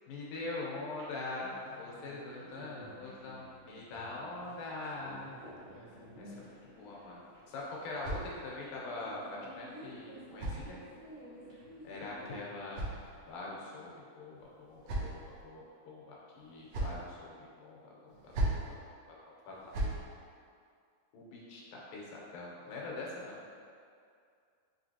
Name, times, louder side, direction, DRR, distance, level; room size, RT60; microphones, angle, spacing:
voice 1, 0.1-5.3 6.2-7.2 7.5-10.8 11.8-12.9 13.3-18.8 19.1-19.2 19.5-19.7 21.1-23.4, left 2 dB, 85° left, -4 dB, 2.4 m, -43 dB
sound 1, 0.9-12.4, equal, 65° right, 2.0 m, -53 dB
voice 2, 1.5-2.0 5.2-6.1 22.6-23.1, left 1 dB, 45° right, -14 dB, 0.8 m, -59 dB
sound 2, 7.1-8.8 9.8-11.2 12.2-13.5 14.4-15.4 16.3-17.1 18.1-18.7 19.5-20.0, right 1 dB, 85° right, 1.4 m, -39 dB
5.6 x 3.2 x 2.7 m, 2.3 s
omnidirectional pair, 3.8 m